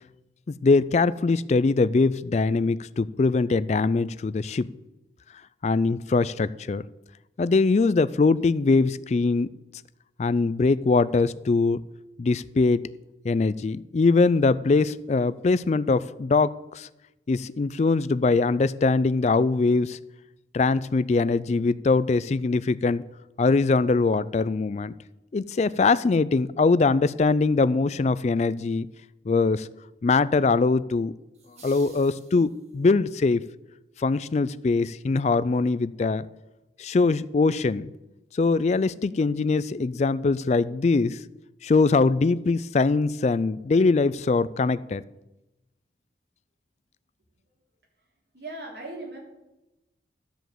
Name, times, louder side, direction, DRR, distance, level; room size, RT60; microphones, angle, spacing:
voice 1, 0.5-4.7 5.6-6.8 7.4-9.5 10.2-11.8 12.2-12.8 13.2-16.9 17.3-20.0 20.5-23.1 23.4-24.9 25.3-28.9 29.3-29.7 30.0-31.1 31.6-33.4 34.0-36.3 36.8-37.9 38.3-41.2 41.6-45.0, left 3 dB, 40° left, 17 dB, 0.3 m, -22 dB
sound 1, 31.3-32.9, right 4 dB, 40° right, 1.7 m, -52 dB
voice 2, 48.3-49.2, right 2 dB, 60° right, -2 dB, 3.3 m, -37 dB
12.0 x 5.2 x 7.6 m, 0.98 s
head